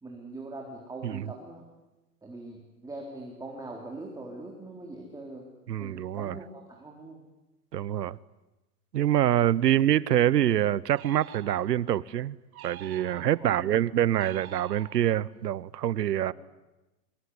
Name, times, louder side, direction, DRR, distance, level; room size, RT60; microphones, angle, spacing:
voice 1, 0.0-1.7 2.2-5.5 5.8-7.2 13.4-13.8 16.2-16.3, right 2 dB, 10° right, 3.9 m, -42 dB
voice 2, 5.7-6.4 7.7-8.2 8.9-12.3 12.6-16.3, right 11 dB, 90° right, 1.1 m, -25 dB
sound 1, 10.9-12.0 12.5-13.6 14.1-15.3, right 11 dB, 60° right, 2.5 m, -47 dB
24.5 x 24.0 x 9.8 m
hypercardioid pair, 140°, 47 cm